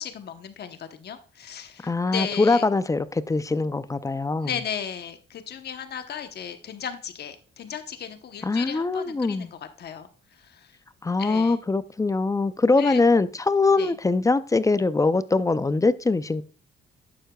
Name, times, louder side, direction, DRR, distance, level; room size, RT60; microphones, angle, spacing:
voice 1, 0.0-2.6 4.4-10.7 11.2-11.6 12.8-13.0 13.8-14.0, left 8 dB, 55° left, 1.0 m, -35 dB
voice 2, 1.8-4.5 8.4-9.5 11.0-16.4, left 3 dB, 15° left, 0.4 m, -22 dB
11.0 x 7.9 x 2.3 m
cardioid pair, 90°, 20 cm